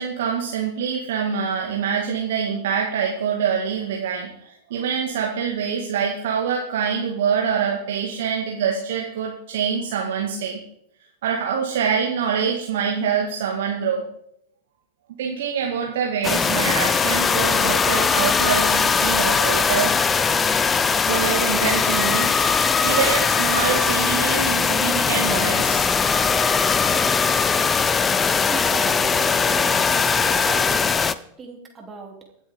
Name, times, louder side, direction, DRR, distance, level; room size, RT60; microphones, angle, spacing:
voice 1, 0.0-10.6 11.2-14.1 15.2-20.0 21.1-25.9 28.1-28.2, right 7 dB, 55° right, -1 dB, 2.1 m, -25 dB
sound 1, 16.2-31.1, left 5 dB, 20° left, 0.6 m, -20 dB
voice 2, 28.5-32.2, right 4 dB, 20° right, 1 dB, 3.6 m, -36 dB
24.0 x 8.5 x 3.9 m, 0.74 s
figure-of-eight pair, 90°, 0 cm